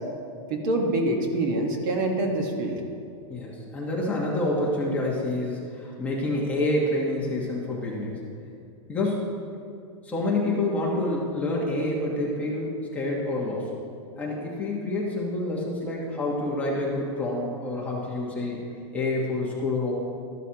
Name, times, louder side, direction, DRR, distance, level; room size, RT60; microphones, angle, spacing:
voice 1, 0.5-2.8, right 2 dB, 40° right, 2 dB, 1.2 m, -25 dB
voice 2, 3.3-8.2 8.9-9.3 10.0-13.7 14.2-18.6 18.9-19.9, left 2 dB, 10° left, -4 dB, 1.1 m, -28 dB
13.5 x 12.0 x 2.9 m, 2.4 s
supercardioid pair, 175°, 17 cm